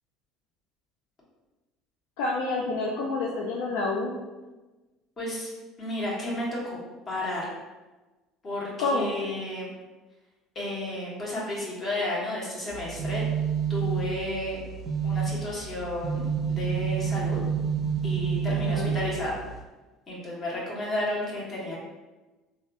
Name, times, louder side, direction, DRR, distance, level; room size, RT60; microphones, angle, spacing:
voice 1, 2.2-4.1 8.8-9.1 18.5-18.9, left 3 dB, 75° left, -1 dB, 0.3 m, -28 dB
voice 2, 5.2-5.5 5.8-6.8 7.1-7.5 8.4-9.7 10.5-13.2 13.7-14.6 15.0-17.4 18.0-19.4 20.1-21.8, left 1 dB, 35° left, -5 dB, 1.4 m, -32 dB
sound 1, 12.7-19.6, right 7 dB, 40° right, 0.5 m, -29 dB
3.3 x 2.6 x 2.4 m, 1.2 s
hypercardioid pair, 70°, 0 cm